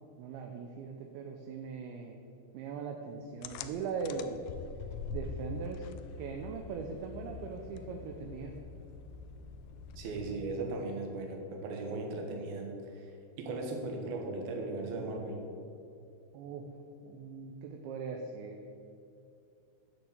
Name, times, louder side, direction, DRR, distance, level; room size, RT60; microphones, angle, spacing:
voice 1, 0.2-2.2 2.5-4.4 5.1-5.8 6.2-8.6 16.3-16.6 17.0-18.6, right 5 dB, 80° right, 2 dB, 2.8 m, -40 dB
sound 1, 3.4-10.6, left 5 dB, 85° left, 2.6 m, -44 dB
voice 2, 10.0-13.1 13.4-15.4, right 2 dB, 65° right, 1 dB, 2.8 m, -37 dB
10.5 x 6.7 x 7.9 m, 2.6 s
omnidirectional pair, 5.7 m